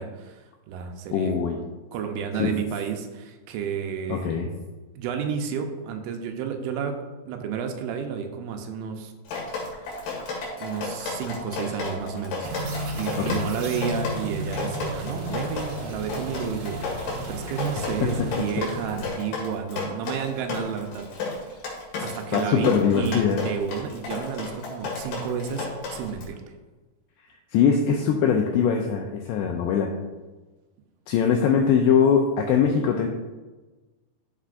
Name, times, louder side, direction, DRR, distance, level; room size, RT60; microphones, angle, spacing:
voice 1, 0.0-1.4 1.9-4.4 5.0-9.1 10.6-16.8 17.3-21.4 22.0-26.4, right 7 dB, 85° right, 5 dB, 3.2 m, -31 dB
voice 2, 1.1-1.6 2.4-2.5 4.1-4.5 13.2-13.4 18.0-18.1 22.3-23.4 27.5-29.9 31.1-33.1, left 7 dB, 90° left, 2 dB, 2.4 m, -22 dB
Drip, 9.3-26.3, left 4 dB, 60° left, 3.5 m, -33 dB
sound 1, 12.4-19.1, right 2 dB, 65° right, 2.4 m, -34 dB
13.5 x 5.6 x 2.5 m, 1.2 s
omnidirectional pair, 5.5 m